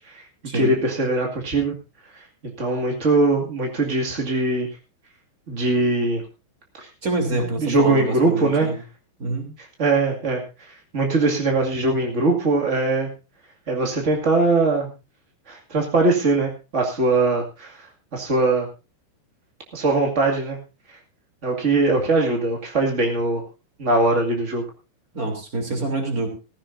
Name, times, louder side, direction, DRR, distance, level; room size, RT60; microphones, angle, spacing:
voice 1, 0.5-1.7 2.6-4.7 5.5-6.2 6.8-6.9 7.6-8.7 9.8-10.4 10.9-13.1 13.7-14.9 15.5-17.8 18.1-18.7 19.7-20.6 21.4-23.4 23.8-24.6, right 2 dB, 60° right, 1 dB, 0.7 m, -21 dB
voice 2, 7.0-8.8 9.2-9.5 25.1-26.3, right 2 dB, 20° right, 3 dB, 2.8 m, -26 dB
16.5 x 15.5 x 2.7 m, 0.29 s
omnidirectional pair, 5.4 m